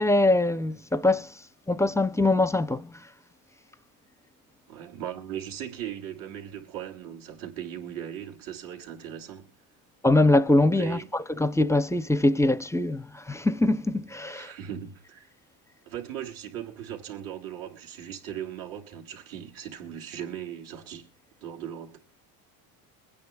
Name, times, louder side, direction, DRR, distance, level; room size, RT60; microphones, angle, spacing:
voice 1, 0.0-1.3 1.7-2.9 10.0-11.0 11.4-14.5, left 2 dB, 5° left, 0.5 m, -23 dB
voice 2, 4.7-9.5 10.8-11.1 14.3-15.3 15.9-21.1 21.4-22.0, right 10 dB, 75° right, 3.3 m, -38 dB
24.5 x 9.5 x 2.3 m
supercardioid pair, 100°, 49 cm